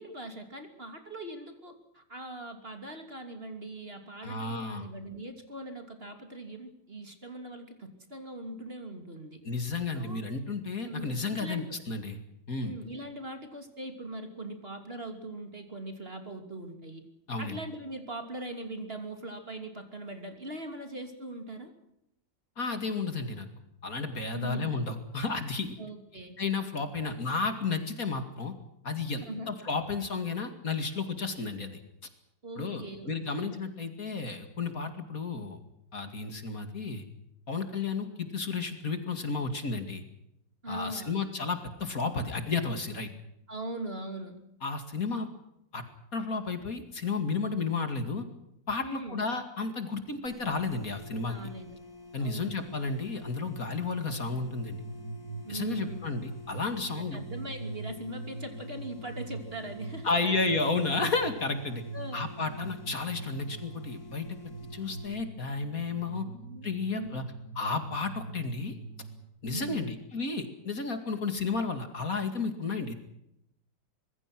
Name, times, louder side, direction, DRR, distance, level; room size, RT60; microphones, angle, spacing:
voice 1, 0.0-9.4 9.9-10.2 10.8-11.8 12.6-17.0 17.4-21.7 24.3-24.7 25.8-26.4 27.0-27.2 29.3-29.5 32.4-33.5 40.6-41.2 43.5-44.4 48.8-49.2 51.3-51.8 52.2-52.6 55.4-56.1 56.9-60.3 61.9-62.3 66.0-67.2 69.5-69.9, right 2 dB, 30° right, 6 dB, 3.2 m, -41 dB
voice 2, 4.2-4.9 9.4-12.2 12.5-12.7 17.3-17.6 22.6-23.5 23.8-25.7 26.4-28.5 28.8-31.8 32.6-35.6 35.9-37.0 37.5-40.0 40.7-43.1 44.6-45.3 45.7-45.8 46.1-48.2 48.7-51.4 52.1-54.8 55.5-57.2 60.0-61.8 62.1-64.3 64.7-66.3 66.6-67.2 67.6-68.7 69.4-72.9, left 4 dB, 50° left, 7 dB, 2.7 m, -32 dB
sound 1, 50.2-65.1, left 3 dB, 80° left, 4.8 m, -50 dB
sound 2, 53.9-69.2, right 2 dB, 55° right, 6.9 m, -43 dB
25.5 x 22.0 x 6.1 m, 0.81 s
omnidirectional pair, 2.0 m